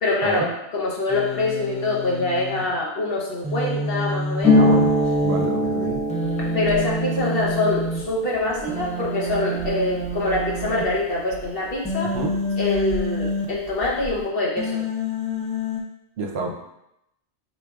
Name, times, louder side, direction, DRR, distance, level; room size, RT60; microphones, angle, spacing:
voice 1, 0.0-4.7 6.4-12.1 12.6-14.8, left 2 dB, 55° left, -3 dB, 1.0 m, -25 dB
Human voice, 1.1-2.6 3.4-5.4 6.1-8.0 8.7-10.8 11.8-13.4 14.6-15.8, left 1 dB, 10° left, 0.3 m, -28 dB
Harp, 4.4-11.9 12.2-13.3 13.5-14.2, left 1 dB, 15° right, 0.9 m, -25 dB
voice 2, 4.6-4.9 5.2-6.0 12.1-12.3 16.2-16.7, right 3 dB, 65° right, 2 dB, 0.9 m, -28 dB
4.8 x 4.0 x 2.3 m, 0.83 s
omnidirectional pair, 1.2 m